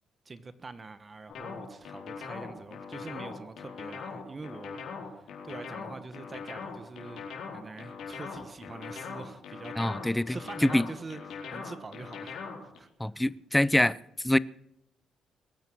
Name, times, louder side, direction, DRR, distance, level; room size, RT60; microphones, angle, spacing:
voice 1, 0.2-7.3 7.5-13.1, right 3 dB, 30° right, 1.1 m, -45 dB
sound 1, 1.3-12.8, left 6 dB, 75° left, 4.5 m, -41 dB
voice 2, 9.8-10.4 10.6-10.8 13.0-14.0 14.2-14.4, left 1 dB, 10° left, 0.6 m, -24 dB
21.5 x 9.2 x 6.2 m
cardioid pair, 90°, 0 cm